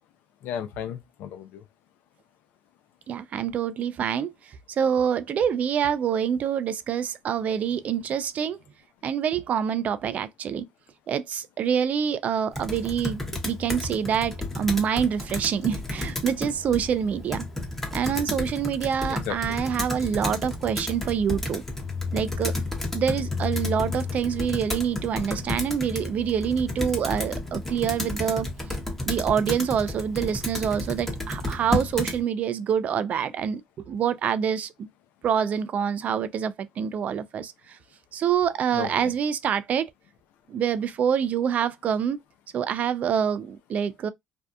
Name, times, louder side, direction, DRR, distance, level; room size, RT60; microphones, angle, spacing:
voice 1, 0.4-1.6 19.1-19.6 38.7-39.1, left 9 dB, 75° left, 0.5 m, -35 dB
voice 2, 3.1-4.3 4.7-8.6 9.0-10.7 11.1-17.5 17.9-21.6 22.1-22.5 22.9-28.5 29.1-33.6 33.9-34.7 35.2-37.5 38.1-39.9 40.5-42.2 42.5-44.1, right 8 dB, 50° right, 0.3 m, -26 dB
Computer keyboard, 12.5-32.2, left 2 dB, 10° left, 0.9 m, -32 dB
2.6 x 2.3 x 2.2 m
supercardioid pair, 90°, 3 cm